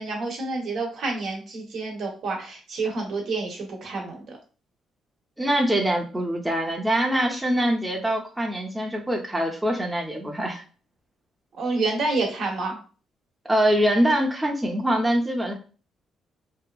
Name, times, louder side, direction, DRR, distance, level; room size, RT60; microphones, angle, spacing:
voice 1, 0.0-4.4 11.5-12.8, right 3 dB, 70° right, 1 dB, 0.9 m, -28 dB
voice 2, 5.4-10.6 13.4-15.5, right 1 dB, 10° right, 0 dB, 0.6 m, -24 dB
2.7 x 2.4 x 2.3 m, 0.37 s
cardioid pair, 90°, 0 cm